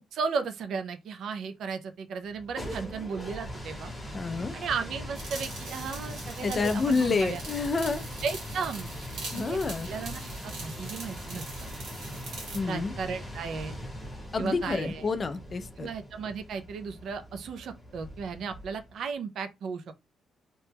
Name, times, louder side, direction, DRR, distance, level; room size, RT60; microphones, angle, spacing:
voice 1, 0.1-3.9 4.5-7.4 8.2-8.9 9.3-9.6 9.9-11.7 12.6-13.8 14.4-15.1 15.8-19.9, right 5 dB, 55° right, 0.4 m, -35 dB
sound 1, 2.3-19.0, equal, ahead, 1.0 m, -41 dB
voice 2, 4.1-4.5 6.4-8.0 9.3-9.9 12.5-12.9 14.3-15.9, left 4 dB, 25° left, 0.3 m, -28 dB
sound 2, 5.1-12.6, right 3 dB, 80° right, 1.5 m, -43 dB
2.8 x 2.2 x 3.4 m
cardioid pair, 170°, 0 cm